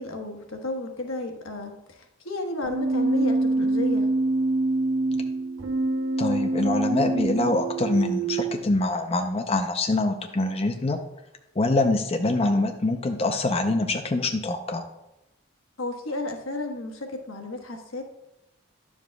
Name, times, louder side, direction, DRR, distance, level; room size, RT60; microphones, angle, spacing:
voice 1, 0.0-4.1 15.8-18.0, left 2 dB, 90° left, 3 dB, 1.2 m, -33 dB
Keyboard (musical), 2.6-8.6, right 2 dB, 70° right, 1.0 m, -25 dB
voice 2, 6.2-11.0 11.6-14.8, left 2 dB, 30° left, 5 dB, 0.5 m, -25 dB
10.5 x 7.2 x 2.2 m, 0.91 s
head